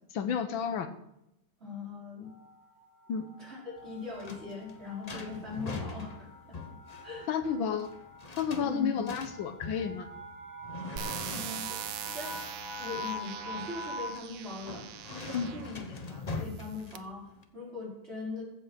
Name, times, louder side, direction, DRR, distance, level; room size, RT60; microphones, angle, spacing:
voice 1, 0.1-0.9 3.1-3.3 7.3-7.9 8.4-10.1 15.3-15.5, left 7 dB, 75° left, 9 dB, 1.6 m, -31 dB
voice 2, 1.6-2.3 3.4-6.6 7.0-7.3 8.6-9.1 11.3-12.4 12.8-18.4, left 3 dB, 30° right, -5 dB, 4.9 m, -41 dB
sound 1, 2.2-14.3, left 1 dB, 10° left, 2.0 m, -45 dB
sound 2, 3.8-17.4, left 3 dB, 40° left, 0.5 m, -43 dB
sound 3, 11.0-15.7 16.4-17.0, right 9 dB, 70° right, 0.8 m, -41 dB
15.0 x 5.5 x 6.2 m, 0.81 s
omnidirectional pair, 2.2 m